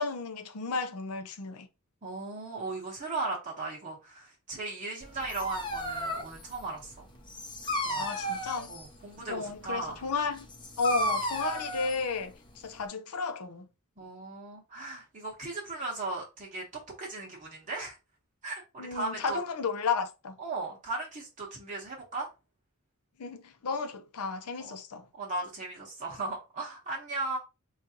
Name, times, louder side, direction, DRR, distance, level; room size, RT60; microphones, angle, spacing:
voice 1, 0.0-1.7 8.0-8.7 9.3-10.5 10.8-12.3 12.6-13.7 18.8-20.4 23.2-25.0, left 4 dB, 90° left, 0.6 m, -33 dB
voice 2, 2.0-7.1 7.8-8.1 8.7-10.0 14.0-18.0 18.4-19.4 20.4-22.3 24.6-24.8 25.2-27.4, right 3 dB, 35° right, 0.8 m, -37 dB
Dog, 5.0-12.9, equal, 20° left, 0.6 m, -35 dB
3.8 x 2.4 x 2.7 m
head